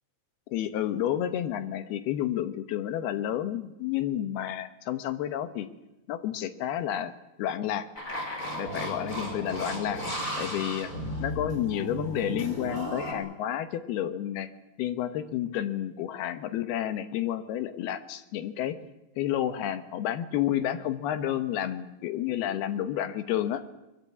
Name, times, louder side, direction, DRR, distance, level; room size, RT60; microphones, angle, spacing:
voice 1, 0.5-5.7 6.1-7.1 7.4-7.9 8.6-10.0 10.4-10.9 11.2-14.5 14.8-18.8 19.2-23.6, left 11 dB, 80° left, 11 dB, 3.1 m, -30 dB
sound 1, 8.0-13.1, equal, 20° left, 6.4 m, -34 dB
22.5 x 22.0 x 8.5 m, 0.97 s
omnidirectional pair, 4.5 m